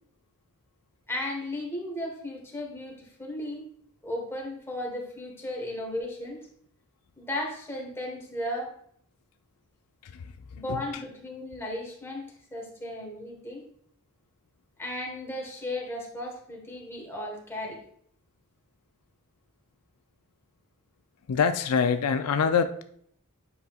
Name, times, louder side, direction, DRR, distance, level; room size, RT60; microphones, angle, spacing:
voice 1, 1.1-3.6 4.0-6.4 7.2-8.7 10.5-12.2 12.5-13.6 14.8-17.8, left 1 dB, 10° left, -1 dB, 1.4 m, -35 dB
voice 2, 21.3-22.8, left 6 dB, 80° left, 9 dB, 0.4 m, -25 dB
8.0 x 5.4 x 2.4 m, 0.64 s
head